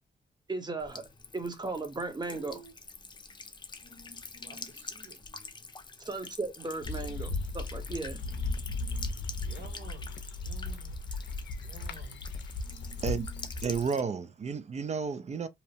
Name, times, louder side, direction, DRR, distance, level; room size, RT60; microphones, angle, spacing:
voice 1, 0.5-1.0 1.3-2.6 6.0-8.2, right 3 dB, 25° right, 0.8 m, -36 dB
Buzz / Water tap faucet / Trickle dribble, 0.8-14.0, left 4 dB, 25° left, 0.5 m, -46 dB
voice 2, 2.3-2.7 4.4-5.2 6.9-7.3 9.4-11.0 11.6-12.2, right 6 dB, 80° right, 1.0 m, -51 dB
sound 1, 6.8-13.9, left 2 dB, 85° left, 0.5 m, -36 dB
voice 3, 13.6-15.5, right 5 dB, 40° right, 0.4 m, -32 dB
2.8 x 2.0 x 2.7 m
cardioid pair, 80°, 18 cm